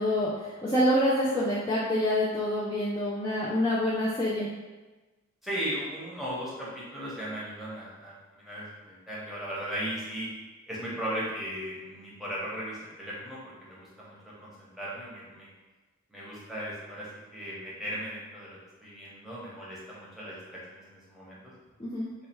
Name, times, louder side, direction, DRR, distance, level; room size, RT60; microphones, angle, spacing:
voice 1, 0.0-4.5 21.8-22.1, equal, 15° left, -8 dB, 0.4 m, -26 dB
voice 2, 5.4-10.3 10.7-15.5 16.1-21.5, equal, ahead, -7 dB, 0.8 m, -37 dB
3.2 x 2.3 x 4.3 m, 1.2 s
head